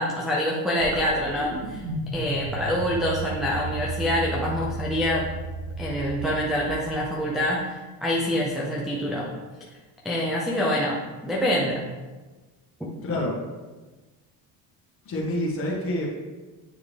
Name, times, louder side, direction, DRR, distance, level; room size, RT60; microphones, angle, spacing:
voice 1, 0.0-1.8 2.1-5.3 5.8-7.7 8.0-9.3 10.0-11.8, equal, ahead, -5 dB, 0.4 m, -26 dB
sound 1, 0.8-7.3, right 2 dB, 85° right, 1.4 m, -34 dB
voice 2, 13.0-13.4 15.0-16.1, left 1 dB, 35° left, -3 dB, 1.5 m, -27 dB
9.3 x 3.5 x 3.3 m, 1.2 s
cardioid pair, 165°, 40 cm